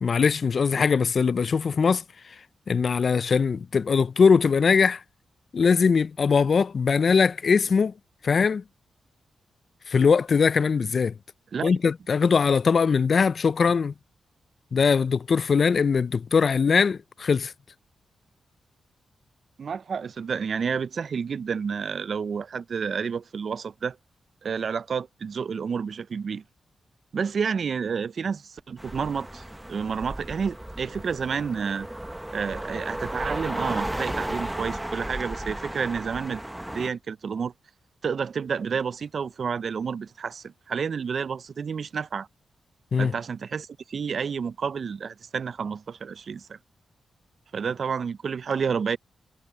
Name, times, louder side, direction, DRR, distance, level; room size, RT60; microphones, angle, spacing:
voice 1, 0.0-2.4 2.7-5.0 5.5-7.9 8.2-8.6 9.9-11.2 11.6-13.9 14.7-17.5 42.9-43.1, left 5 dB, 55° left, 0.3 m, -21 dB
voice 2, 19.6-24.0 24.4-26.4 27.1-29.4 29.7-31.9 32.3-36.4 36.7-37.5 38.0-42.3 43.0-46.6 47.5-49.0, right 6 dB, 60° right, 0.4 m, -30 dB
sound 1, 28.8-36.9, right 1 dB, 10° right, 1.0 m, -34 dB
cardioid pair, 90°, 0 cm